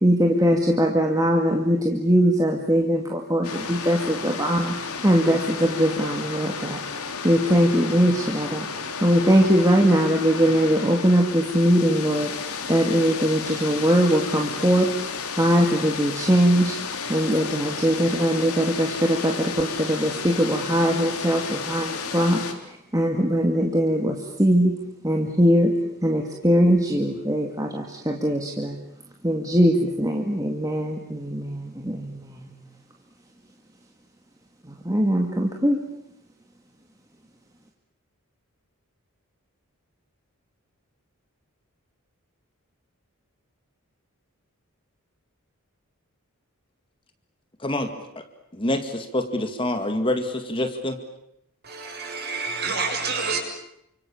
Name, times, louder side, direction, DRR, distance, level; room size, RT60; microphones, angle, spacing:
voice 1, 0.0-6.8 7.2-8.7 9.0-12.3 12.7-14.9 15.4-16.8 17.1-24.7 25.0-25.7 26.0-28.8 29.2-32.5 34.8-35.8, equal, 15° right, 2.4 m, -21 dB
sound 1, 3.4-22.5, left 5 dB, 85° left, 3.8 m, -33 dB
voice 2, 48.5-51.0, left 1 dB, 25° left, 2.2 m, -26 dB
voice 3, 51.6-53.4, right 4 dB, 45° right, 7.2 m, -28 dB
29.5 x 26.5 x 7.2 m
head